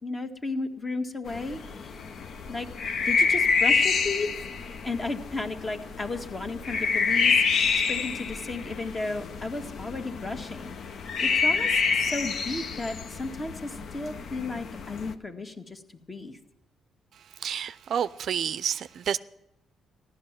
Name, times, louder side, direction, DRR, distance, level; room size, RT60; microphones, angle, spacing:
voice 1, 0.0-1.9 2.5-2.7 3.0-4.3 4.8-10.7 11.2-15.8 16.1-16.4, left 3 dB, 30° left, 1.7 m, -34 dB
sound 1, 1.3-15.1, left 5 dB, 60° left, 0.9 m, -28 dB
voice 2, 17.4-19.2, right 8 dB, 65° right, 0.5 m, -29 dB
14.5 x 12.0 x 7.5 m
cardioid pair, 90°, 0 cm